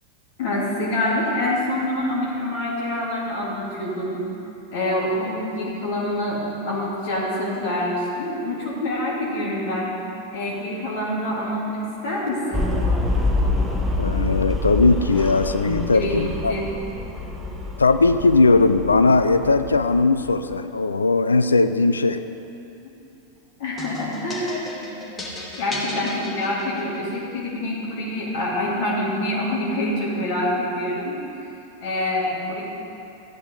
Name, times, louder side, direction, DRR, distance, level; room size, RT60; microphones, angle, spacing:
voice 1, 0.4-4.2 4.7-9.9 10.3-12.7 15.9-16.8 23.6-25.0 25.6-31.2 31.8-32.6, left 1 dB, 50° left, -5 dB, 2.8 m, -26 dB
sound 1, 12.5-20.6, left 2 dB, 10° right, 1.1 m, -26 dB
voice 2, 14.0-16.5 17.8-22.2, left 3 dB, 75° left, 10 dB, 0.4 m, -18 dB
sound 2, 23.8-27.2, left 2 dB, 20° left, 1.6 m, -35 dB
14.0 x 8.9 x 3.8 m, 2.8 s
figure-of-eight pair, 90°, 0 cm